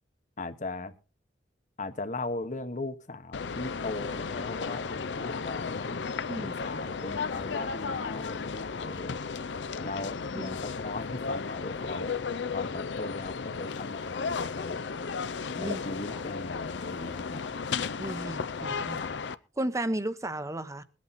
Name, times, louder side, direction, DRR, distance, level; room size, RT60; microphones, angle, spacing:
voice 1, 0.4-0.9 1.8-6.0 6.4-9.2 9.8-12.1 12.5-14.8 15.6-17.4 18.9-19.1, left 2 dB, 45° left, 1.2 m, -38 dB
sound 1, 3.3-19.3, left 5 dB, 75° left, 0.6 m, -34 dB
voice 2, 15.6-16.2 18.0-19.0 19.6-20.8, right 1 dB, 15° right, 0.8 m, -34 dB
21.0 x 8.5 x 4.1 m
head